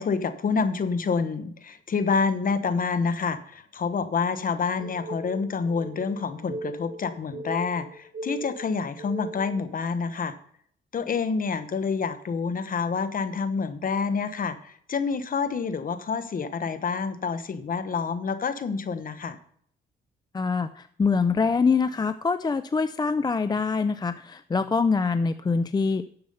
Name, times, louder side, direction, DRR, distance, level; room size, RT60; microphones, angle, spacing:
voice 1, 0.0-10.3 10.9-19.4, left 5 dB, 45° left, 12 dB, 1.1 m, -28 dB
sound 1, 4.8-9.6, right 2 dB, 40° right, 4.7 m, -38 dB
voice 2, 20.3-26.0, left 4 dB, 20° left, 12 dB, 0.4 m, -24 dB
10.5 x 7.0 x 5.4 m, 0.64 s
cardioid pair, 90°, 20 cm